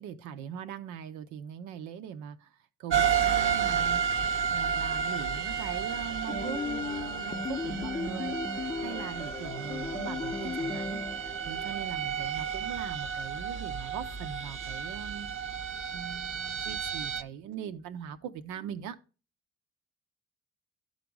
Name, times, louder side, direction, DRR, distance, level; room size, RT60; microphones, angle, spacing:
voice 1, 0.0-2.5 2.8-4.0 4.5-15.3 15.6-19.0, right 8 dB, 80° right, 0.8 m, -41 dB
sound 1, 2.9-17.2, right 7 dB, 45° right, 0.9 m, -32 dB
sound 2, 6.3-12.7, left 4 dB, 20° left, 0.6 m, -37 dB
12.0 x 4.0 x 4.7 m
supercardioid pair, 55°, 29 cm